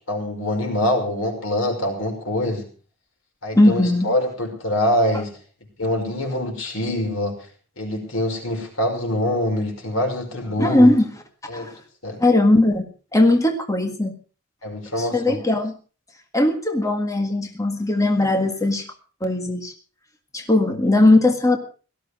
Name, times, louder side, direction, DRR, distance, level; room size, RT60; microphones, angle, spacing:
voice 1, 0.0-2.7 3.4-5.4 5.8-7.5 7.8-10.9 11.5-11.7 12.0-12.2 14.6-15.4, left 1 dB, 90° left, 3 dB, 5.7 m, -24 dB
voice 2, 3.5-4.1 10.6-11.1 11.5-11.8 12.2-14.1 15.0-15.7 16.3-18.9 19.2-19.7 20.3-21.6, left 2 dB, 15° left, 4 dB, 1.8 m, -18 dB
17.5 x 14.0 x 4.8 m, 0.38 s
head